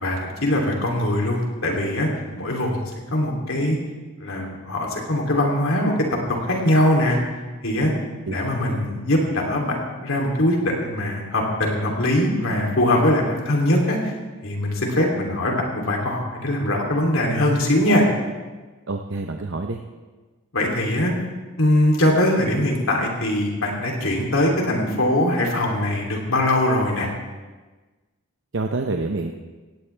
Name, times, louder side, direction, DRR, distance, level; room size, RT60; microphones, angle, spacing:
voice 1, 0.0-2.1 2.4-2.8 3.1-3.8 4.2-5.9 6.3-7.2 7.6-7.9 8.3-14.0 14.4-18.0 20.5-21.1 21.6-27.1, left 1 dB, 65° left, 0 dB, 3.0 m, -21 dB
voice 2, 18.9-19.8 28.5-29.4, right 3 dB, 55° right, 4 dB, 0.7 m, -27 dB
17.5 x 16.5 x 3.4 m, 1.3 s
head